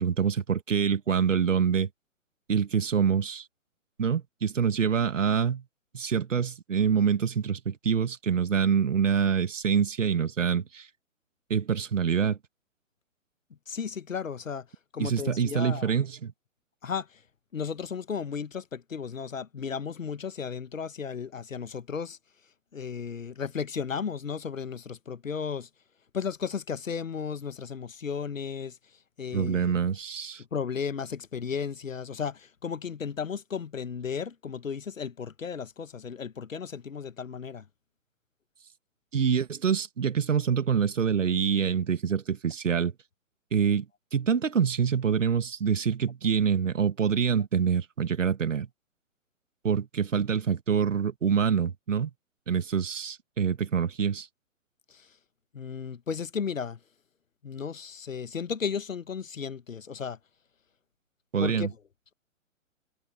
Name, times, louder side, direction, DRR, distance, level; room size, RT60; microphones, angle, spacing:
voice 1, 0.0-1.9 2.5-3.5 4.0-5.6 5.9-10.9 11.5-12.4 15.0-16.3 29.3-30.4 39.1-42.9 43.5-43.9 44.1-48.7 49.6-52.1 52.5-54.3 61.3-61.7, right 7 dB, 65° right, 2.0 m, -26 dB
voice 2, 13.7-14.7 14.9-15.9 16.8-17.2 17.5-22.2 22.7-25.7 26.1-28.8 29.2-29.9 30.5-37.7 54.9-55.2 55.5-56.8 57.4-60.2 61.4-61.8, left 6 dB, 75° left, 1.5 m, -34 dB
figure-of-eight pair, 130°, 40 cm